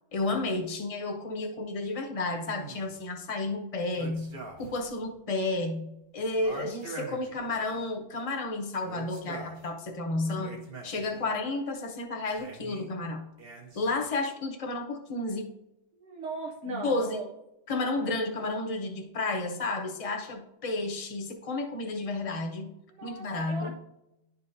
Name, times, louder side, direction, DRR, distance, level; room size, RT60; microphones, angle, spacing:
voice 1, 0.1-4.3 4.6-13.2 13.7-15.5 16.7-17.2 17.7-22.7 23.0-23.7, left 2 dB, 30° left, 4 dB, 0.9 m, -32 dB
sound 1, 2.4-3.0 3.9-4.9 5.1-5.2 6.4-7.9 8.8-9.7 10.2-11.3 12.3-12.9 13.4-14.1, right 3 dB, 55° right, 1.4 m, -44 dB
voice 2, 16.0-17.3 18.0-18.1 22.9-23.7, right 3 dB, 75° right, -1 dB, 1.1 m, -39 dB
10.5 x 5.5 x 2.7 m, 0.89 s
omnidirectional pair, 1.2 m